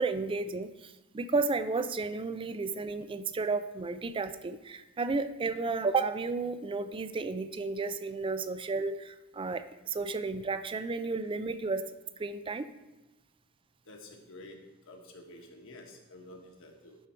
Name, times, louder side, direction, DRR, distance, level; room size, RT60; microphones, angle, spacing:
voice 1, 0.0-11.9 12.2-12.7, right 3 dB, 25° right, 12 dB, 0.4 m, -32 dB
voice 2, 13.9-14.6 14.9-17.0, left 1 dB, 65° left, 2 dB, 1.4 m, -50 dB
11.0 x 4.8 x 4.4 m, 1.0 s
head